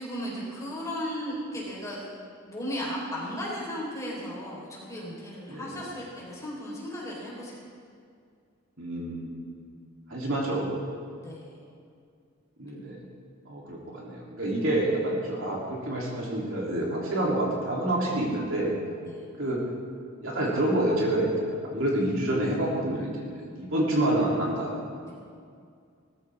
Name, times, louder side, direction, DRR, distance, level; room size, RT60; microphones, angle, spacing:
voice 1, 0.0-2.0 2.5-7.6 11.2-11.6 19.0-19.2 25.0-25.1, equal, 15° left, -6 dB, 4.5 m, -35 dB
voice 2, 5.5-5.8 8.8-9.4 10.1-10.7 12.6-13.0 13.4-18.7 19.4-19.6 20.2-21.3 21.6-24.7, right 1 dB, 70° right, -4 dB, 3.3 m, -28 dB
20.0 x 14.0 x 3.7 m, 2.3 s
head